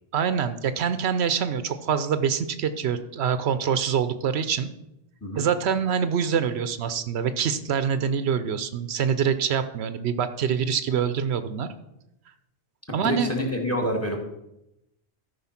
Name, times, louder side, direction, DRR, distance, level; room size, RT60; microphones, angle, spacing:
voice 1, 0.1-4.7 5.3-11.7 12.9-13.3, right 7 dB, 85° right, 12 dB, 0.9 m, -25 dB
voice 2, 12.9-14.2, left 1 dB, 15° left, 3 dB, 1.8 m, -27 dB
13.5 x 5.4 x 5.8 m, 0.87 s
omnidirectional pair, 1.1 m